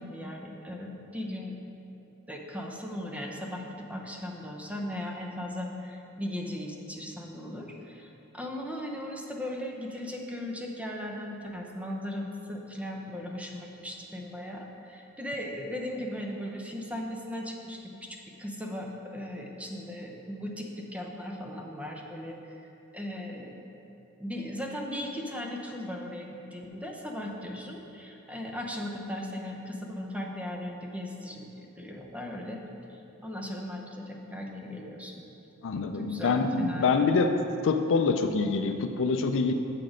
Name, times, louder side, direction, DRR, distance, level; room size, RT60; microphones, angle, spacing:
voice 1, 0.0-1.6 2.3-22.6 22.9-23.7 24.2-32.6 33.2-35.2 35.9-37.1, left 1 dB, 5° right, 0 dB, 0.7 m, -37 dB
voice 2, 35.6-37.3 37.6-39.5, left 4 dB, 60° left, 7 dB, 0.4 m, -25 dB
7.4 x 6.0 x 5.0 m, 2.9 s
head